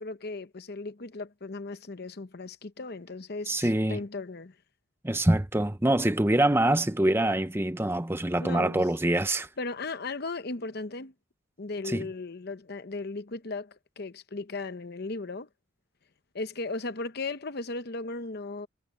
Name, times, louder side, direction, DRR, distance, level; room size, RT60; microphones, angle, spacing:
voice 1, 0.0-4.5 8.4-8.8 9.6-11.1 11.6-15.5 16.3-18.7, left 3 dB, 55° left, 0.9 m, -36 dB
voice 2, 3.5-4.0 5.0-9.5 11.8-12.1, right 1 dB, 10° right, 0.7 m, -25 dB
head